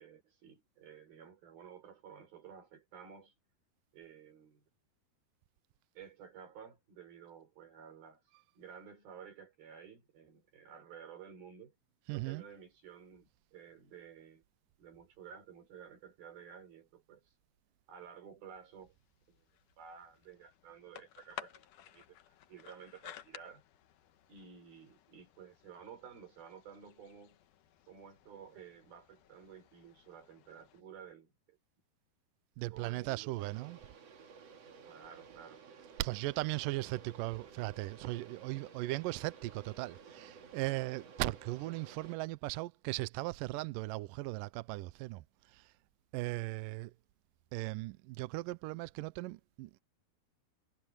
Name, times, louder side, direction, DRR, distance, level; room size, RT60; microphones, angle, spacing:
voice 1, 0.0-3.3 3.9-4.6 6.0-8.2 8.6-11.7 12.1-14.4 14.8-17.3 17.9-18.9 19.3-19.5 19.8-22.2 22.5-23.6 24.3-27.4 27.9-31.6 32.7-33.4 34.8-35.7, right 7 dB, 70° right, 6.8 m, -53 dB
voice 2, 12.1-12.4 32.6-33.8 36.0-45.7 46.1-46.9 47.5-49.8, right 20 dB, 85° right, 2.0 m, -38 dB
sound 1, 18.6-30.8, left 11 dB, 65° left, 2.3 m, -55 dB
sound 2, 33.4-42.2, right 6 dB, 45° right, 2.7 m, -55 dB
omnidirectional pair, 4.5 m